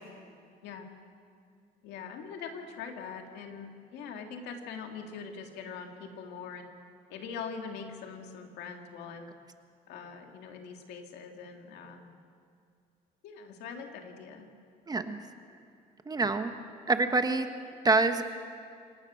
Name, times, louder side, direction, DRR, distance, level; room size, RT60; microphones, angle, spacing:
voice 1, 1.8-6.7 7.1-9.3 9.9-12.2 13.2-14.5, left 6 dB, 85° left, 3 dB, 2.4 m, -42 dB
voice 2, 14.9-15.2 16.1-16.5 16.9-17.5 17.8-18.2, right 3 dB, 25° right, 8 dB, 1.3 m, -26 dB
27.0 x 16.5 x 6.4 m, 2.3 s
cardioid pair, 110°, 17 cm